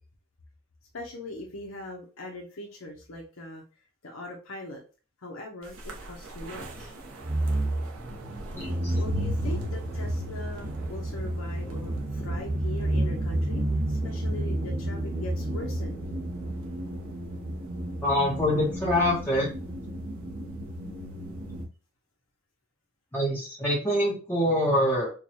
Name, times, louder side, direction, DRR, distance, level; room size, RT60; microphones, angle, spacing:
voice 1, 0.9-3.6 4.0-4.8 5.2-6.9 9.0-16.0, left 2 dB, 80° left, 0 dB, 0.8 m, -41 dB
sound 1, 5.8-21.7, right 1 dB, 80° right, 0.8 m, -31 dB
voice 2, 8.5-8.9 18.0-19.5 23.1-25.1, left 1 dB, 10° left, -7 dB, 0.9 m, -25 dB
4.6 x 2.3 x 2.8 m, 0.34 s
head